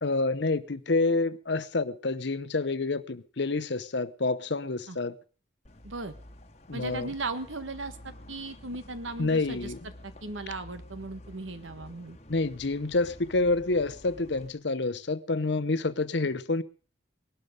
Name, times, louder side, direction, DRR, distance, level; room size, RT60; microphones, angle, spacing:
voice 1, 0.0-5.1 6.7-7.1 9.2-9.8 12.3-16.6, left 3 dB, 60° left, 0.8 m, -28 dB
sound 1, 5.7-14.5, left 1 dB, 35° left, 1.3 m, -49 dB
voice 2, 5.8-6.2 6.7-9.7 10.2-12.2, right 3 dB, 80° right, 1.6 m, -37 dB
20.0 x 12.0 x 5.2 m
head